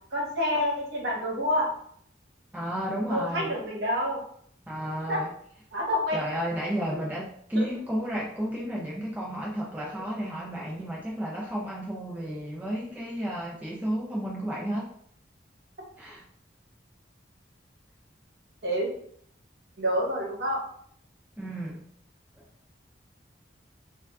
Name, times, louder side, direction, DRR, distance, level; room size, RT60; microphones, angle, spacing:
voice 1, 0.1-1.7 3.1-4.2 5.1-5.2 5.7-6.2 7.5-7.6 18.6-18.9 19.8-20.6, equal, 60° right, -3 dB, 1.0 m, -27 dB
voice 2, 2.5-3.5 4.7-5.3 6.1-14.9 16.0-16.2 21.4-21.9 22.4-22.5, equal, 10° right, -4 dB, 0.4 m, -32 dB
3.5 x 2.3 x 2.2 m, 0.64 s
head